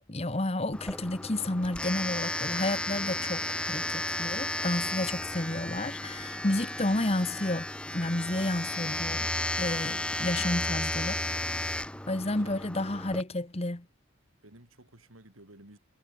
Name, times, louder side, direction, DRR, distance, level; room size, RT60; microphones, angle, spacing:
voice 1, 0.1-7.7 7.9-9.3 9.6-11.6 12.1-13.9, left 1 dB, 30° left, 1.3 m, -31 dB
Domestic sounds home sounds, 0.7-13.2, left 1 dB, 5° left, 0.7 m, -33 dB
voice 2, 11.9-12.6 14.4-15.8, right 1 dB, 85° right, 5.3 m, -54 dB
head